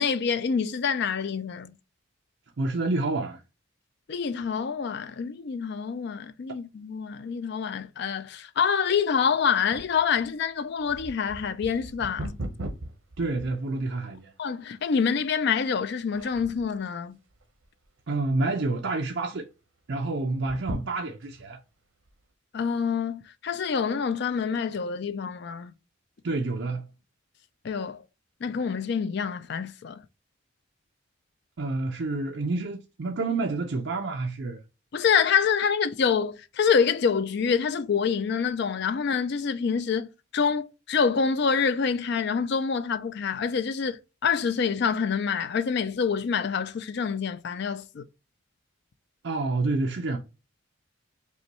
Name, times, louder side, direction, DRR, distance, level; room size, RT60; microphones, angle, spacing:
voice 1, 0.0-1.7 4.1-12.4 14.4-17.2 20.7-20.8 22.5-25.7 27.6-28.0 28.4-30.0 34.9-48.0, left 6 dB, 55° left, 0.4 m, -26 dB
voice 2, 2.6-3.4 13.2-14.3 18.1-19.5 19.9-21.6 26.2-26.9 31.6-34.6 49.2-50.2, right 3 dB, 60° right, 0.5 m, -28 dB
sound 1, 9.7-14.2 14.8-14.9 15.5-15.8 16.1-16.8 17.3-18.0 18.4-18.5 18.7-18.8 20.3-21.5 22.1-22.2, right 1 dB, 75° right, 0.8 m, -39 dB
5.3 x 2.2 x 2.9 m
head